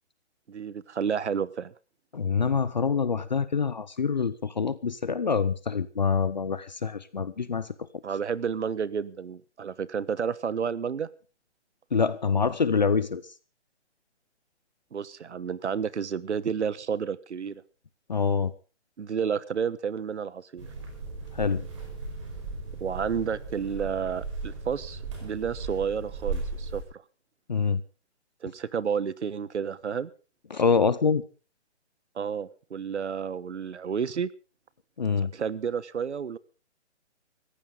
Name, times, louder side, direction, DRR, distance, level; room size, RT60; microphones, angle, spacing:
voice 1, 0.5-1.7 8.0-11.1 14.9-17.6 19.0-20.7 22.8-27.0 28.4-30.1 32.1-34.3 35.3-36.4, right 7 dB, 75° right, 19 dB, 1.2 m, -31 dB
voice 2, 2.1-7.7 11.9-13.2 18.1-18.5 21.3-21.7 27.5-27.8 30.5-31.2 35.0-35.3, left 5 dB, 40° left, 16 dB, 0.7 m, -25 dB
sound 1, 20.6-26.8, right 4 dB, 25° right, 4.8 m, -36 dB
20.0 x 15.0 x 3.8 m, 0.35 s
hypercardioid pair, 175°, 35 cm